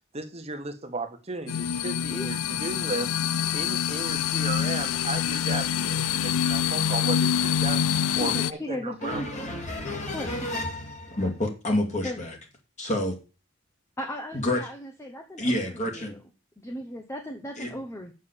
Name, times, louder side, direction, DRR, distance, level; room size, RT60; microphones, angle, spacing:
voice 1, 0.1-3.1 3.5-7.8 8.1-9.2, right 3 dB, 30° right, 1.4 m, -35 dB
sound 1, 1.5-8.5, left 8 dB, 85° left, 0.5 m, -26 dB
voice 2, 8.2-9.3 10.1-10.6 12.0-12.2 14.0-16.2 16.6-18.1, left 1 dB, 15° left, 1.0 m, -37 dB
voice 3, 9.0-12.4 12.8-13.2 14.3-14.6 15.4-16.1 17.6-17.7, left 1 dB, 35° left, 2.2 m, -29 dB
7.4 x 6.4 x 6.9 m
head